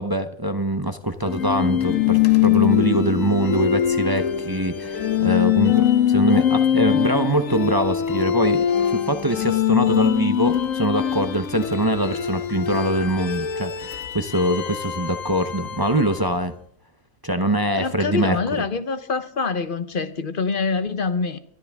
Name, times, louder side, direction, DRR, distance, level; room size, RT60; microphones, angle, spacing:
voice 1, 0.0-16.5 17.2-18.4, right 1 dB, 20° right, 0.6 m, -23 dB
sound 1, 1.3-16.4, left 10 dB, 75° left, 1.3 m, -22 dB
voice 2, 17.7-21.4, left 4 dB, 45° left, 1.0 m, -25 dB
23.5 x 12.5 x 3.5 m
omnidirectional pair, 1.4 m